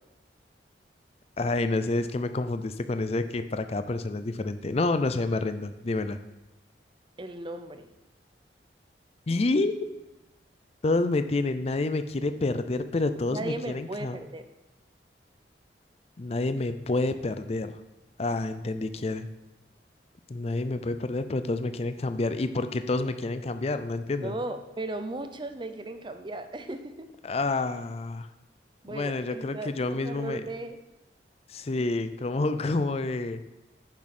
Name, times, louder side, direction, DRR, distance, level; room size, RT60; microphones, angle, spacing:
voice 1, 1.4-6.2 9.3-9.7 10.8-14.2 16.2-17.7 18.2-19.3 20.3-24.3 27.2-28.3 28.9-30.4 31.5-33.4, left 2 dB, 35° left, 10 dB, 0.4 m, -28 dB
voice 2, 7.2-7.9 13.3-14.4 24.2-27.1 28.8-30.8, right 2 dB, 25° right, 8 dB, 0.6 m, -36 dB
9.9 x 7.0 x 4.3 m, 1.0 s
head